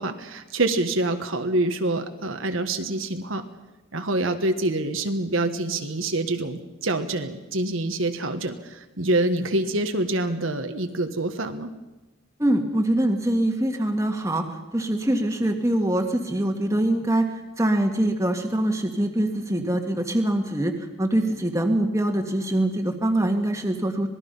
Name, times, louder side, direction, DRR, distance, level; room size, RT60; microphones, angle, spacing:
voice 1, 0.0-3.4 3.9-11.7, right 2 dB, 75° right, 6 dB, 1.5 m, -26 dB
voice 2, 12.4-14.4 14.7-17.3 17.6-20.7 21.0-24.1, right 1 dB, 15° right, 3 dB, 1.8 m, -23 dB
26.0 x 20.0 x 5.6 m, 1.1 s
head